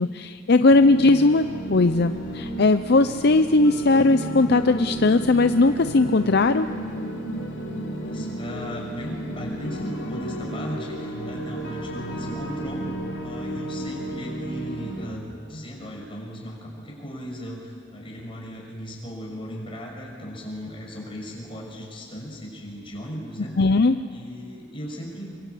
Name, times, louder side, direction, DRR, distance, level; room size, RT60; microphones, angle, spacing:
voice 1, 0.0-6.7 23.6-24.0, left 3 dB, 55° left, 10 dB, 0.6 m, -19 dB
sound 1, 0.7-15.1, right 1 dB, 75° left, 4.5 m, -32 dB
voice 2, 8.0-12.9 13.2-23.5 24.1-25.3, equal, 30° left, -1 dB, 6.3 m, -37 dB
26.0 x 24.0 x 8.5 m, 2.2 s
head